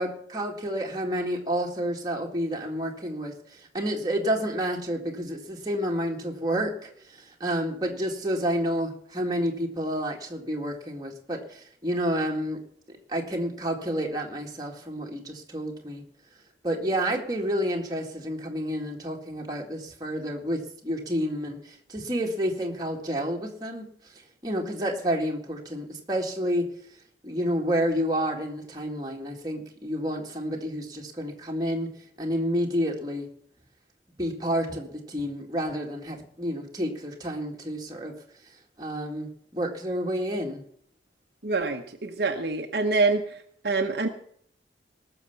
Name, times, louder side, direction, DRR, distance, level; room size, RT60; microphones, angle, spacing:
voice 1, 0.0-12.6 12.9-16.0 16.6-23.8 24.4-26.7 27.2-31.9 32.2-33.3 34.2-38.1 38.8-40.6, equal, 20° right, 1 dB, 2.0 m, -29 dB
voice 2, 41.4-44.1, right 3 dB, 60° right, 4 dB, 1.0 m, -26 dB
18.5 x 6.8 x 6.9 m, 0.65 s
head